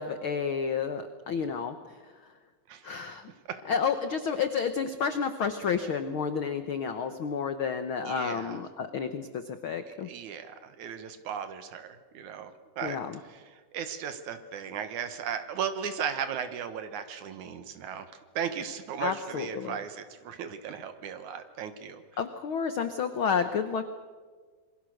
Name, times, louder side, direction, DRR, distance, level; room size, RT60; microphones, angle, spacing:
voice 1, 0.0-2.0 2.8-3.3 3.7-10.1 12.8-13.2 19.0-19.8 22.2-23.9, left 6 dB, 85° left, 9 dB, 1.1 m, -30 dB
voice 2, 8.0-8.6 10.0-13.0 13.3-22.0, right 8 dB, 65° right, 10 dB, 2.6 m, -36 dB
27.5 x 22.0 x 6.5 m, 1.5 s
omnidirectional pair, 3.9 m